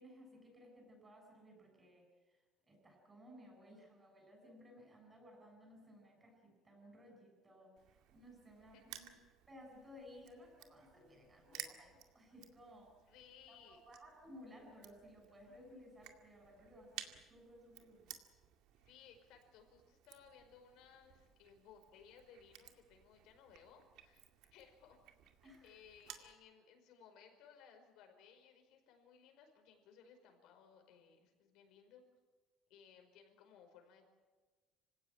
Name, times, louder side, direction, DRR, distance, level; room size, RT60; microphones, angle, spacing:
voice 1, 0.0-9.2 9.5-13.1 13.5-18.2 25.4-25.8 26.1-26.2, equal, 15° right, 1 dB, 7.6 m, -59 dB
Crushing, 7.8-26.3, right 11 dB, 75° right, 2.2 m, -57 dB
voice 2, 13.1-13.8 18.8-24.2 24.5-25.0 25.4-32.0 32.7-34.1, left 7 dB, 70° left, 5 dB, 5.1 m, -62 dB
26.5 x 17.0 x 8.9 m, 1.4 s
cardioid pair, 155°, 0 cm